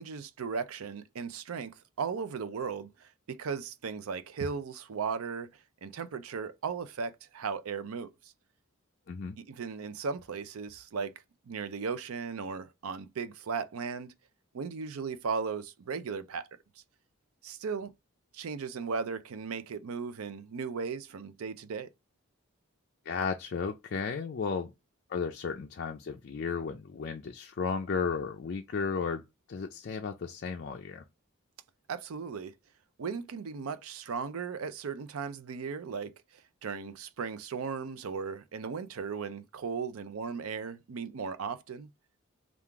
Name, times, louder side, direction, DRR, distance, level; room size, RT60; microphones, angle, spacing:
voice 1, 0.0-5.5 5.8-8.1 9.4-11.1 11.5-14.1 14.5-16.5 17.4-17.9 18.3-21.9 31.9-32.5 33.0-36.1 36.6-41.9, right 5 dB, 85° right, 0.5 m, -36 dB
voice 2, 23.1-24.7 25.1-29.2 29.5-31.0, left 5 dB, 50° left, 0.4 m, -34 dB
3.7 x 2.4 x 4.5 m
head